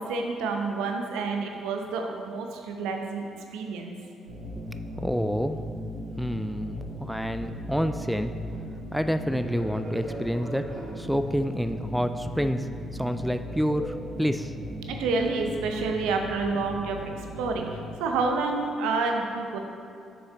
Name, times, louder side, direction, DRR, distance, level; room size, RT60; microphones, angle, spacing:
voice 1, 0.0-3.3 3.5-3.9 14.9-17.0 17.4-17.7 18.0-19.6, right 4 dB, 70° right, 3 dB, 0.7 m, -28 dB
sound 1, 4.3-17.8, equal, 85° right, 1.1 m, -38 dB
voice 2, 5.0-5.6 6.2-8.3 8.9-10.7 11.0-12.7 13.0-14.5, equal, ahead, 9 dB, 0.3 m, -28 dB
Fixed-wing aircraft airplane, 9.3-15.7, right 1 dB, 35° right, 1.6 m, -43 dB
6.8 x 6.1 x 3.8 m, 2.6 s
figure-of-eight pair, 45°, 0 cm